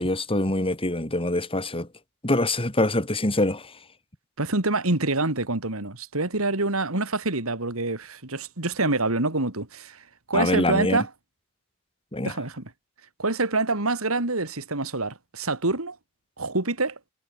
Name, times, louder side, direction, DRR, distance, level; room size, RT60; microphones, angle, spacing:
voice 1, 0.0-1.9 2.2-3.7 10.3-11.0 12.1-12.3, left 1 dB, 25° left, 5.3 m, -24 dB
voice 2, 4.4-10.0 10.3-11.1 12.2-12.7 13.2-16.0 16.4-17.0, right 2 dB, 75° right, 3.1 m, -26 dB
head